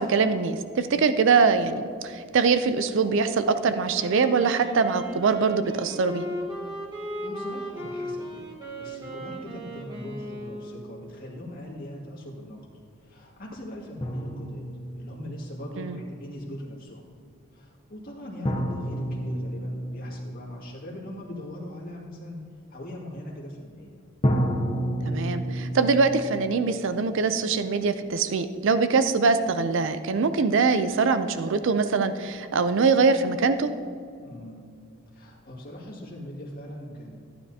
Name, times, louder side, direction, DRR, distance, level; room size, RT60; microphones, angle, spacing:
voice 1, 0.0-6.3 15.8-16.0 25.0-33.7, right 4 dB, 60° right, 11 dB, 0.4 m, -23 dB
Wind instrument woodwind instrument, 3.8-11.0, equal, 20° right, 1.3 m, -37 dB
voice 2, 7.2-12.7 13.0-14.7 14.9-17.0 17.5-22.4 22.7-24.0 34.2-34.7 35.1-37.2, left 1 dB, 45° left, -3 dB, 2.1 m, -40 dB
sound 1, 14.0-15.8 18.5-21.3 24.2-28.1, equal, 25° left, 0.8 m, -31 dB
15.0 x 9.8 x 2.8 m, 2.3 s
head